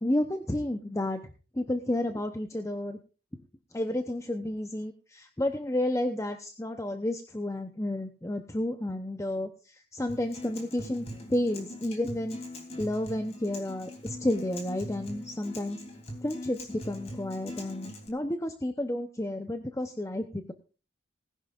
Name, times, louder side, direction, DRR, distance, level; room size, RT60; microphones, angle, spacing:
voice 1, 0.0-1.2 1.5-3.0 3.3-3.4 3.7-12.4 12.8-15.8 16.2-20.5, left 1 dB, 15° left, 7 dB, 0.8 m, -31 dB
Acoustic guitar, 10.1-18.1, left 1 dB, 35° left, 3.3 m, -42 dB
19.5 x 11.0 x 2.5 m, 0.35 s
head